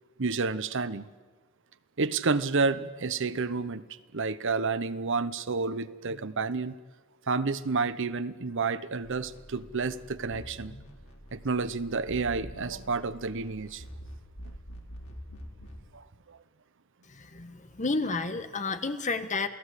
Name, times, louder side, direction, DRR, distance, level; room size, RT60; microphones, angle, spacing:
voice 1, 0.2-1.1 2.0-3.8 4.1-6.7 7.3-10.7 11.3-13.8 15.9-16.4, right 4 dB, 60° right, 14 dB, 0.9 m, -30 dB
sound 1, 9.0-15.9, equal, 85° left, 4.0 m, -46 dB
voice 2, 17.2-19.5, left 3 dB, 35° left, 9 dB, 1.4 m, -31 dB
28.5 x 18.0 x 8.3 m, 1.3 s
head